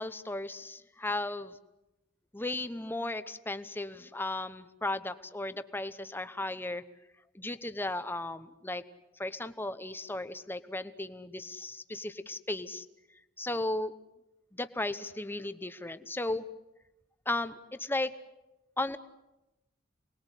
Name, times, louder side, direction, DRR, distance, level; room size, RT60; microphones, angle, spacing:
voice 1, 0.0-1.5 2.3-6.8 7.3-8.8 9.2-12.8 13.4-13.9 14.5-16.5 17.3-18.1 18.8-19.0, left 2 dB, 10° left, 11 dB, 1.0 m, -35 dB
27.5 x 20.5 x 8.3 m, 0.98 s
head